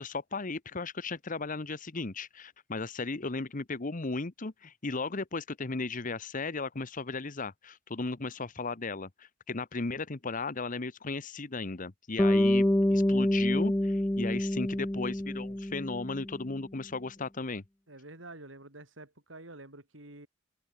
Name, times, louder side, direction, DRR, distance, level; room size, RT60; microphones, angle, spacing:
voice 1, 0.0-17.6, left 3 dB, 45° left, 1.1 m, -36 dB
Bass guitar, 12.2-16.5, left 1 dB, 10° left, 0.6 m, -27 dB
voice 2, 17.9-20.3, right 2 dB, 90° right, 6.2 m, -48 dB
head